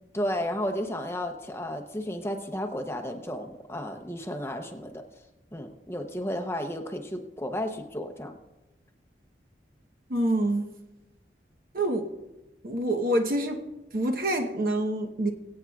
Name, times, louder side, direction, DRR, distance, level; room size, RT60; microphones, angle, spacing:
voice 1, 0.1-5.0 5.5-8.4, left 1 dB, 15° left, 0.7 m, -33 dB
voice 2, 10.1-10.7 11.7-12.1 12.6-13.6 13.9-15.3, right 1 dB, 55° right, 1.0 m, -26 dB
23.5 x 8.6 x 2.4 m
head